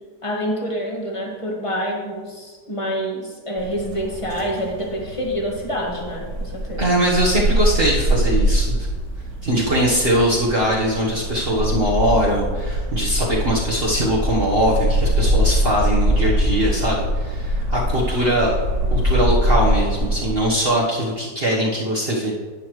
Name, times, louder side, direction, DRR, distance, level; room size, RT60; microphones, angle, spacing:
voice 1, 0.2-6.8, equal, 20° left, -1 dB, 1.6 m, -27 dB
sound 1, 3.6-20.3, equal, 75° right, 2.4 m, -23 dB
voice 2, 6.8-8.9 9.4-18.6 18.9-22.3, equal, 35° right, -5 dB, 1.2 m, -21 dB
11.0 x 9.7 x 3.1 m, 1.5 s
omnidirectional pair, 1.9 m